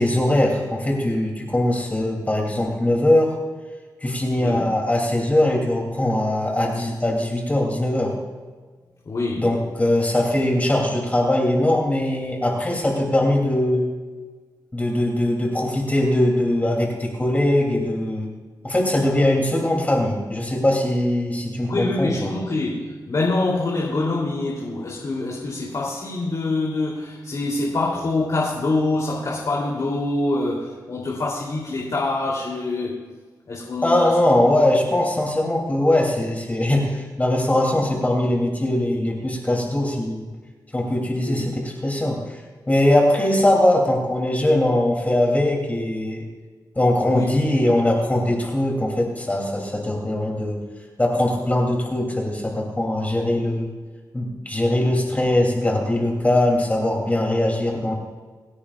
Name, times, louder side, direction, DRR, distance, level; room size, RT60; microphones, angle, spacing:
voice 1, 0.0-3.4 4.0-8.1 9.4-13.9 14.7-18.3 18.6-22.3 33.8-40.3 40.7-42.4 42.7-46.2 46.7-50.6 51.0-53.7 54.1-57.9, left 1 dB, 20° left, -1 dB, 3.0 m, -21 dB
voice 2, 4.3-4.7 9.0-9.5 21.7-33.0 33.5-34.3 41.2-41.5 47.1-47.3, left 2 dB, 55° left, -5 dB, 3.2 m, -25 dB
27.5 x 9.9 x 2.5 m, 1.4 s
wide cardioid pair, 95°, 7 cm